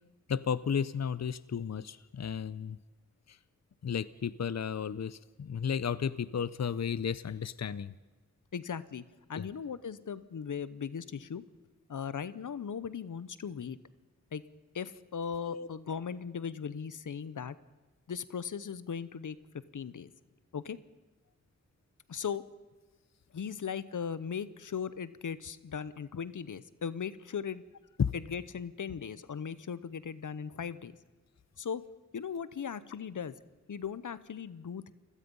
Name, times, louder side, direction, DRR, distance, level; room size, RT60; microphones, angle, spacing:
voice 1, 0.3-2.8 3.3-3.4 3.8-7.9 9.3-9.4 15.5-15.7 28.0-28.1, left 7 dB, 60° left, 17 dB, 0.7 m, -33 dB
voice 2, 8.5-9.0 9.3-11.4 11.9-13.8 14.3-14.4 14.7-17.6 18.1-19.4 19.7-20.1 20.5-20.8 22.1-22.4 23.3-27.6 28.1-30.9 31.6-31.8 32.1-33.3 33.7-34.9, left 7 dB, 85° left, 16 dB, 0.8 m, -38 dB
29.5 x 17.0 x 5.4 m, 1.3 s
cardioid pair, 50°, 30 cm